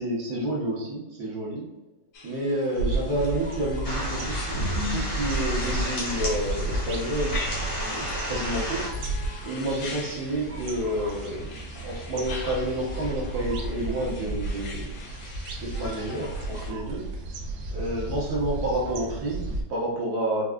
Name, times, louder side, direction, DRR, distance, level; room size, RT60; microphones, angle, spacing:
voice 1, 0.0-1.7 2.2-7.3 7.8-8.8 9.4-11.6 11.8-14.9 15.6-17.0 17.7-20.5, right 1 dB, 65° right, -4 dB, 1.5 m, -29 dB
sound 1, 2.1-16.7, left 3 dB, 65° left, 1.1 m, -42 dB
sound 2, 2.7-19.6, right 2 dB, 85° right, 1.3 m, -33 dB
sound 3, 3.9-8.9, left 1 dB, 85° left, 2.2 m, -32 dB
4.6 x 2.3 x 2.3 m, 1.0 s
omnidirectional pair, 1.9 m